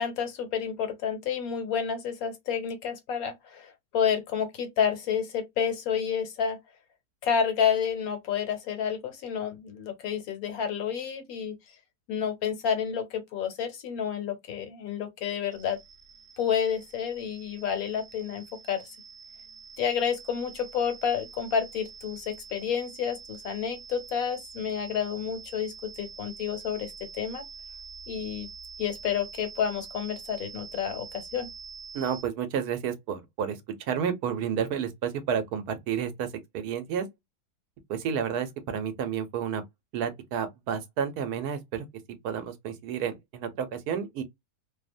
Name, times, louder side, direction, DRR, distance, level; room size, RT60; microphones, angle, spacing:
voice 1, 0.0-6.6 7.2-11.5 12.1-15.8 16.4-18.9 19.8-27.4 28.1-28.5 28.8-31.5, left 7 dB, 70° left, 1.2 m, -30 dB
sound 1, 15.5-32.2, right 5 dB, 55° right, 0.5 m, -46 dB
voice 2, 31.9-36.3 36.5-37.0 37.9-39.6 39.9-41.9 42.2-44.2, right 8 dB, 85° right, 1.2 m, -31 dB
2.8 x 2.1 x 2.4 m
omnidirectional pair, 1.6 m